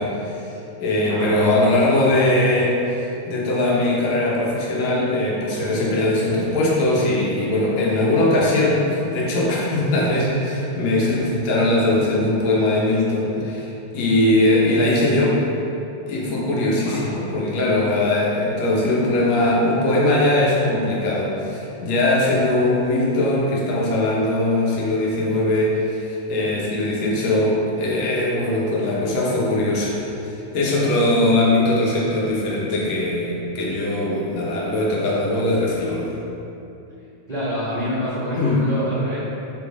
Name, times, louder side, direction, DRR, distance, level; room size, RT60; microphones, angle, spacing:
voice 1, 0.0-2.7 3.3-15.4 16.1-36.1 38.3-38.6, left 1 dB, 70° left, -4 dB, 2.1 m, -20 dB
voice 2, 1.1-1.5 16.8-17.2 37.3-39.3, equal, 30° right, -13 dB, 0.7 m, -27 dB
5.5 x 5.3 x 3.5 m, 2.8 s
omnidirectional pair, 3.3 m